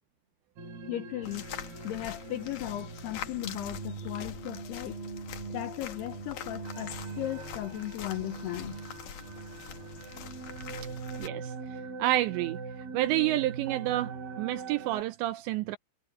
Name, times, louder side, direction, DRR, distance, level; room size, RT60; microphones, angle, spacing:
sound 1, 0.6-15.0, right 4 dB, 55° right, 5.0 m, -41 dB
voice 1, 0.9-1.4 1.8-5.0 5.5-8.8, left 15 dB, 80° left, 2.4 m, -36 dB
sound 2, 1.2-11.3, left 9 dB, 65° left, 2.0 m, -44 dB
voice 2, 11.2-11.5 12.0-12.6 12.9-15.8, right 15 dB, 80° right, 2.6 m, -29 dB
omnidirectional pair, 5.7 m